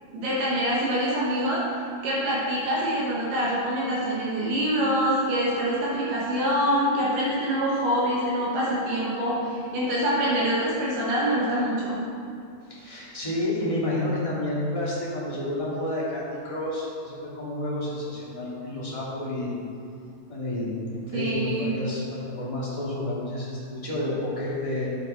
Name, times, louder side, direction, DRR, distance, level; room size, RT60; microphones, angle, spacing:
voice 1, 0.1-1.6 2.0-12.0 21.1-21.7, equal, 70° right, -6 dB, 2.9 m, -25 dB
voice 2, 12.7-19.6 20.3-24.9, left 1 dB, 15° left, -8 dB, 1.2 m, -30 dB
9.3 x 8.1 x 4.4 m, 2.4 s
omnidirectional pair, 4.3 m